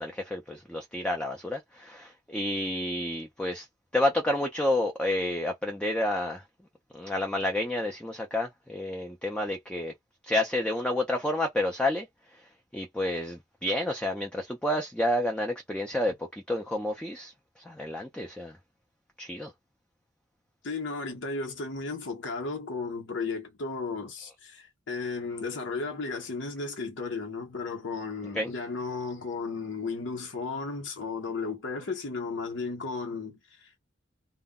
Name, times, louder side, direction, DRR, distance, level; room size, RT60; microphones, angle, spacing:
voice 1, 0.0-3.7 3.9-6.4 6.9-9.9 10.3-12.1 12.7-17.3 17.7-18.5 19.2-19.5 28.4-28.5, left 1 dB, 5° left, 0.4 m, -29 dB
voice 2, 20.6-33.8, left 4 dB, 75° left, 0.8 m, -34 dB
2.1 x 2.1 x 3.6 m
head